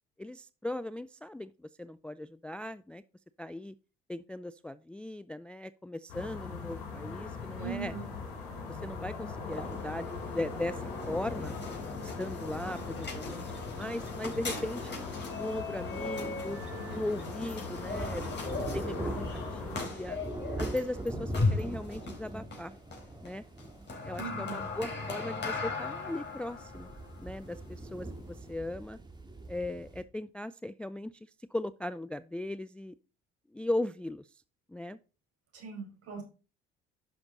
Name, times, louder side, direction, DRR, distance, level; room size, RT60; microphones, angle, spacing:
voice 1, 0.2-3.0 3.4-3.7 4.1-7.9 8.7-11.5 12.2-15.0 15.4-16.6 16.9-20.2 20.6-22.7 23.2-23.4 24.0-26.9 27.2-29.0 29.5-31.1 31.5-32.9 33.5-34.3 34.7-35.0, left 1 dB, 5° left, 0.3 m, -38 dB
sound 1, 6.1-19.9, left 4 dB, 70° left, 4.6 m, -41 dB
voice 2, 7.6-8.1 24.2-24.6 35.5-36.2, right 7 dB, 55° right, 5.2 m, -40 dB
sound 2, 9.4-28.5, left 3 dB, 35° left, 4.4 m, -38 dB
sound 3, 16.7-17.0 17.4-30.0, right 2 dB, 15° right, 2.3 m, -42 dB
11.0 x 6.1 x 3.9 m
hypercardioid pair, 60°, 29 cm